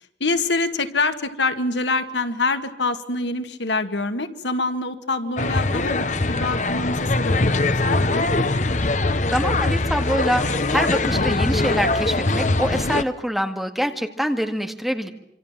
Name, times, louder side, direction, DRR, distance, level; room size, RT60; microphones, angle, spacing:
voice 1, 0.2-8.3, left 3 dB, 85° left, 8 dB, 2.1 m, -25 dB
sound 1, 5.4-13.0, left 2 dB, 45° left, 1.1 m, -22 dB
voice 2, 9.3-15.1, equal, ahead, 5 dB, 2.0 m, -25 dB
27.0 x 26.0 x 7.5 m, 0.74 s
head